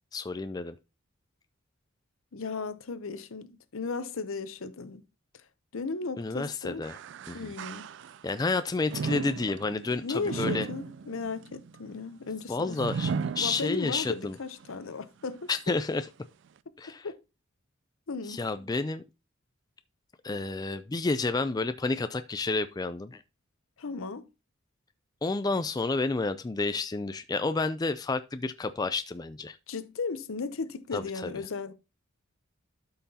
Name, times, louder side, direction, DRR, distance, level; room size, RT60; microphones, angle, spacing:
voice 1, 0.1-0.8 6.2-7.0 7.3-7.5 8.2-10.7 12.5-14.4 15.5-16.1 16.8-17.1 18.3-19.0 20.2-23.2 25.2-29.6 30.9-31.3, left 3 dB, 20° left, 0.3 m, -30 dB
voice 2, 2.3-5.0 5.3-5.4 5.7-6.8 7.3-7.9 10.0-12.8 13.4-15.7 16.7-17.2 18.1-18.4 23.8-24.3 29.7-31.7, left 4 dB, 70° left, 0.7 m, -36 dB
sound 1, 6.8-8.4 8.9-14.1 14.6-14.7 15.6-15.7, right 5 dB, 55° right, 0.3 m, -36 dB
12.5 x 5.8 x 2.8 m
head